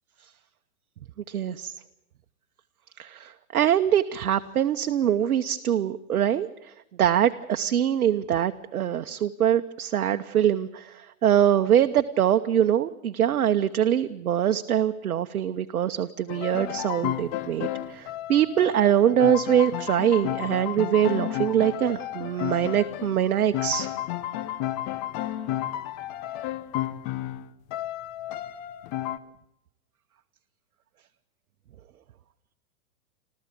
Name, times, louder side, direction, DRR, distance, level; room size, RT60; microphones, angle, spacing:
voice 1, 1.3-1.7 3.0-6.7 7.0-23.9, right 10 dB, 75° right, 7 dB, 1.1 m, -23 dB
sound 1, 16.3-29.2, left 13 dB, 35° left, 1.0 m, -32 dB
30.0 x 13.5 x 8.5 m, 0.84 s
hypercardioid pair, 130°, 43 cm